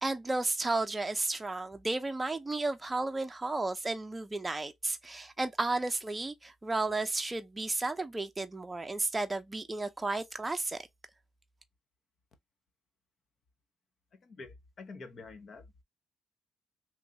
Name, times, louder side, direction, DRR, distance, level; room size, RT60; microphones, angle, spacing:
voice 1, 0.0-10.8, right 2 dB, 20° right, 0.6 m, -33 dB
voice 2, 14.1-15.7, left 3 dB, 50° left, 0.8 m, -48 dB
3.1 x 2.5 x 2.9 m
cardioid pair, 90°, 0 cm